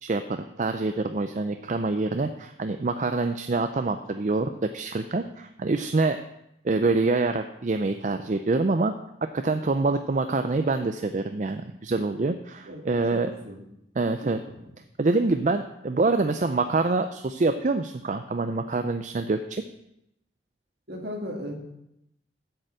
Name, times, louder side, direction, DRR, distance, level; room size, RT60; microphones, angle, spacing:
voice 1, 0.0-6.2 6.6-8.9 9.3-13.3 14.0-14.4 15.0-19.6, right 3 dB, 40° right, 8 dB, 0.4 m, -26 dB
voice 2, 13.1-13.7 14.2-14.6 20.9-21.5, equal, 60° right, 0 dB, 2.3 m, -37 dB
8.0 x 6.6 x 7.7 m, 0.82 s
head